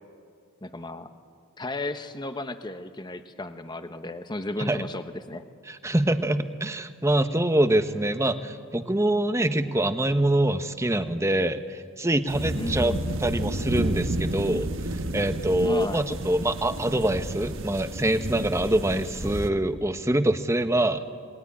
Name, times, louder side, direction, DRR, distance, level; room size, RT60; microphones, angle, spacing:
voice 1, 0.6-1.1 1.6-5.4 12.6-13.1 15.6-16.0, left 2 dB, 20° left, 9 dB, 1.0 m, -34 dB
voice 2, 5.7-12.9 13.2-14.7 15.1-21.0, right 1 dB, 15° right, 9 dB, 1.0 m, -25 dB
sound 1, 12.3-19.5, right 1 dB, 55° right, 1.4 m, -31 dB
28.0 x 20.5 x 9.8 m, 2.2 s
head